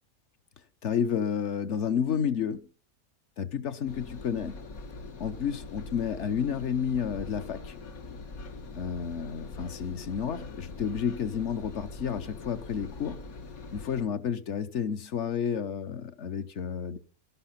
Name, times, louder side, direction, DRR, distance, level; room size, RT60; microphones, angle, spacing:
voice 1, 0.8-2.7 3.4-4.6 5.2-7.7 8.7-13.2 13.7-17.0, left 7 dB, 55° left, 1.1 m, -31 dB
Engine, 3.9-14.0, left 3 dB, 70° left, 1.8 m, -43 dB
13.0 x 11.5 x 5.7 m
omnidirectional pair, 1.5 m